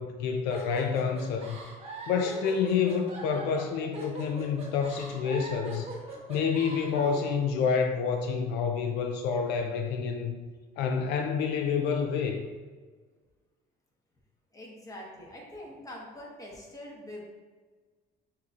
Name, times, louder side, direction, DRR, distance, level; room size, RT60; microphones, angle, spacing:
voice 1, 0.0-1.6 2.1-5.9 6.3-10.4 10.8-12.4, left 6 dB, 85° left, 5 dB, 0.4 m, -28 dB
sound 1, 0.5-7.3, right 2 dB, 35° right, 1.0 m, -41 dB
voice 2, 14.5-17.2, left 1 dB, 20° left, -2 dB, 1.1 m, -44 dB
6.4 x 2.8 x 2.4 m, 1.4 s
cardioid pair, 110°, 17 cm